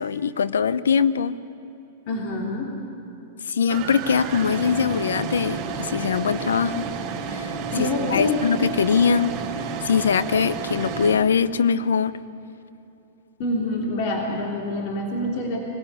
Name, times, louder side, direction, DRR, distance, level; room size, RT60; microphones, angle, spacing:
voice 1, 0.0-1.4 3.5-6.9 7.3-7.5 7.8-9.3 9.8-12.1, left 6 dB, 85° left, 15 dB, 0.7 m, -22 dB
voice 2, 2.1-2.7 7.7-8.5 13.4-15.6, left 1 dB, 50° left, -1 dB, 3.3 m, -26 dB
sound 1, 3.7-11.1, right 5 dB, 40° right, 4.0 m, -31 dB
23.5 x 15.5 x 8.4 m, 2.9 s
hypercardioid pair, 115°, 0 cm